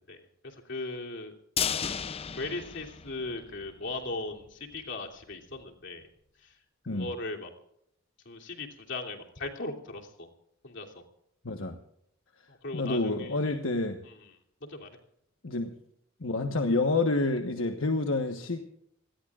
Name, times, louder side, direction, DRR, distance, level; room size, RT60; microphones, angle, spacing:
voice 1, 0.1-1.3 2.4-6.1 6.9-7.5 8.2-10.3 10.6-11.0 12.5-13.6 14.0-14.3 14.6-14.9, left 2 dB, 65° left, 0 dB, 3.0 m, -38 dB
sound 1, 1.6-3.7 4.0-4.1 4.5-4.6, left 7 dB, 30° left, 0.5 m, -33 dB
voice 2, 11.4-11.8 12.7-14.0 15.4-15.7 16.2-18.6, left 2 dB, 80° left, 5 dB, 1.3 m, -28 dB
27.0 x 19.5 x 2.5 m, 0.75 s
head